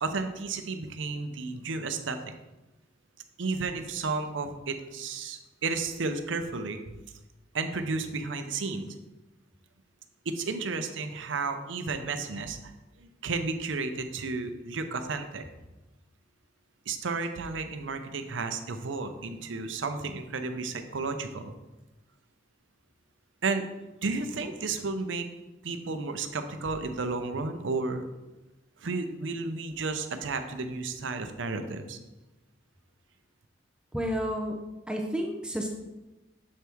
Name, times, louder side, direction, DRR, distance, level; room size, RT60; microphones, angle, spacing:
voice 1, 0.0-2.3 3.4-6.9 7.5-8.9 10.3-12.6 13.0-15.4 16.9-21.5 23.4-23.7 24.0-25.3 25.6-28.0 28.8-32.0, right 3 dB, 90° right, 8 dB, 0.6 m, -32 dB
voice 2, 33.9-34.6 34.9-35.7, equal, 5° right, 1 dB, 0.5 m, -30 dB
7.3 x 4.6 x 3.4 m, 1.0 s
head